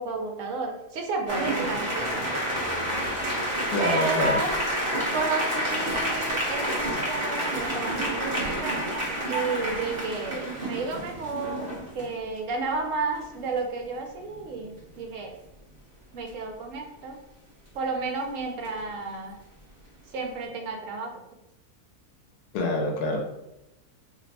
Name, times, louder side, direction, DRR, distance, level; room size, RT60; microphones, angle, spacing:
voice 1, 0.0-2.2 3.8-4.5 5.1-15.3 16.1-17.2 17.7-19.4 20.1-21.1, right 3 dB, 65° right, 2 dB, 1.0 m, -32 dB
sound 1, 1.3-12.0 14.0-14.1 14.4-14.6 18.6-18.9, equal, 35° right, 0.9 m, -29 dB
voice 2, 3.7-4.4 22.5-23.3, left 2 dB, 85° left, 1 dB, 1.2 m, -26 dB
2.9 x 2.1 x 4.0 m, 0.90 s
omnidirectional pair, 1.5 m